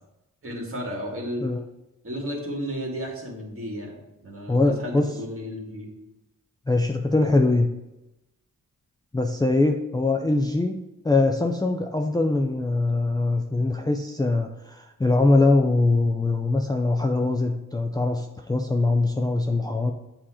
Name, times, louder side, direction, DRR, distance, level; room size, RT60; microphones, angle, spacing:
voice 1, 0.4-1.5 2.0-5.9, equal, 40° right, -1 dB, 1.9 m, -33 dB
voice 2, 4.5-5.1 6.7-7.7 9.1-10.8 11.0-19.9, left 2 dB, 10° left, 3 dB, 0.4 m, -22 dB
7.5 x 2.9 x 4.9 m, 0.95 s
cardioid pair, 75°, 32 cm